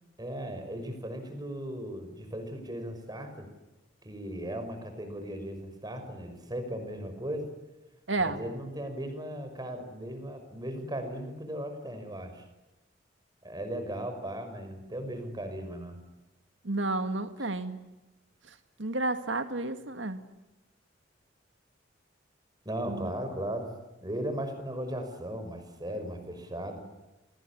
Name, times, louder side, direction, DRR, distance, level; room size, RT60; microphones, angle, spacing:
voice 1, 0.2-3.5 4.0-7.5 8.4-12.4 13.4-16.0 22.6-23.7 24.0-26.8, right 1 dB, 20° right, 7 dB, 5.7 m, -37 dB
voice 2, 8.1-8.4 16.6-17.8 18.5-20.2 22.9-23.1, right 2 dB, 80° right, 8 dB, 2.2 m, -31 dB
29.0 x 20.0 x 10.0 m, 1.1 s
head